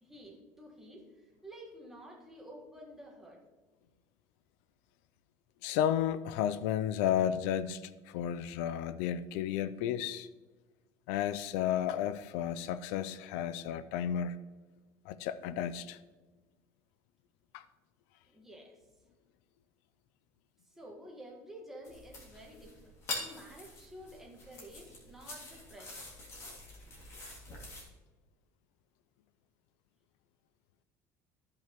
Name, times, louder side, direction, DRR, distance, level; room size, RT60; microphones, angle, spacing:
voice 1, 0.0-3.4 18.3-18.9 20.6-26.0, equal, 5° right, -1 dB, 1.5 m, -51 dB
voice 2, 5.6-10.3 11.1-14.4 15.1-16.0 17.5-17.6, left 10 dB, 85° left, 14 dB, 0.4 m, -32 dB
sound 1, 21.8-27.8, left 2 dB, 40° left, 2.7 m, -45 dB
14.0 x 5.7 x 3.0 m, 1.2 s
cardioid pair, 150°, 7 cm